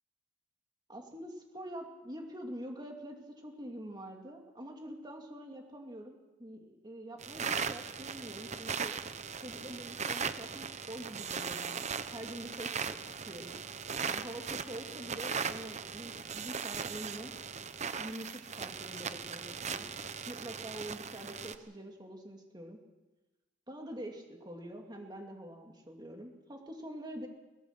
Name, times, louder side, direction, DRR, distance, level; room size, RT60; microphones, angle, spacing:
voice 1, 0.9-9.0 9.4-13.6 14.1-17.3 18.0-19.9 20.3-22.8 23.7-27.3, right 1 dB, 25° right, 2 dB, 2.7 m, -45 dB
sound 1, 7.2-21.6, right 6 dB, 40° right, 0.9 m, -38 dB
22.5 x 20.5 x 6.1 m, 1.1 s
head